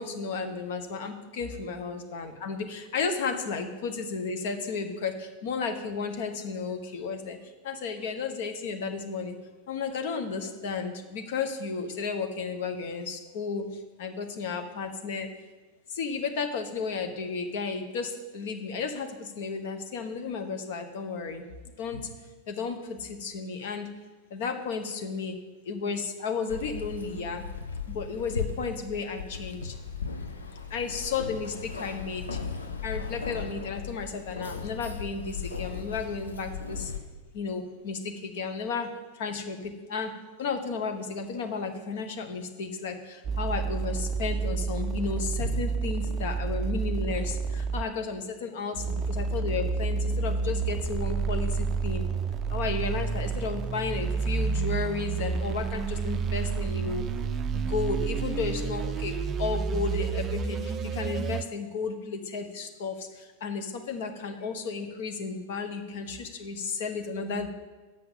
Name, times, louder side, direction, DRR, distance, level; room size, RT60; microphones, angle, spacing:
voice 1, 0.0-9.4 9.7-13.7 14.0-15.3 15.9-21.4 21.8-22.1 22.5-23.9 24.3-27.4 27.9-29.7 30.7-32.4 32.8-36.9 37.3-40.1 40.4-52.0 52.5-57.1 57.5-67.5, left 5 dB, 55° left, 6 dB, 1.1 m, -33 dB
Keys jangling, 26.5-37.0, left 5 dB, 75° left, 0.8 m, -37 dB
sound 1, 43.2-47.9 48.7-61.4, right 5 dB, 25° right, 0.4 m, -30 dB
7.8 x 5.9 x 7.2 m, 1.3 s
figure-of-eight pair, 90°, 0 cm